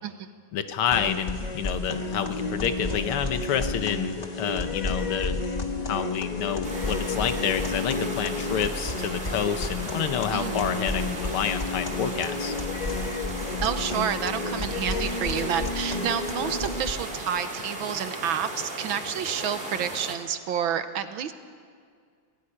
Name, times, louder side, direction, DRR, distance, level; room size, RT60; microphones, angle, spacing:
voice 1, 0.5-5.4 5.8-12.5, left 8 dB, 80° left, 9 dB, 1.9 m, -29 dB
sound 1, 0.9-16.9, left 3 dB, 25° left, 1.0 m, -31 dB
sound 2, 6.6-20.2, right 2 dB, 25° right, 2.7 m, -37 dB
voice 2, 13.6-21.3, right 8 dB, 70° right, 10 dB, 1.6 m, -29 dB
18.0 x 16.0 x 10.0 m, 2.1 s
omnidirectional pair, 2.4 m